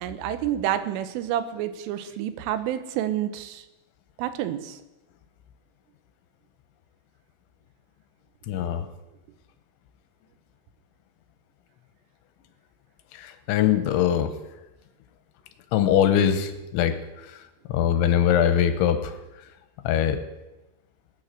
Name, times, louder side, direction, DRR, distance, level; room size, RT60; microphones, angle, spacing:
voice 1, 0.0-3.6 4.2-4.8, right 11 dB, 85° right, 11 dB, 3.5 m, -29 dB
voice 2, 8.5-8.9 13.1-14.3 15.7-17.0 17.2-17.4 17.7-19.2 19.8-20.2, left 9 dB, 80° left, 10 dB, 3.1 m, -22 dB
20.5 x 9.5 x 6.6 m, 1.0 s
omnidirectional pair, 5.7 m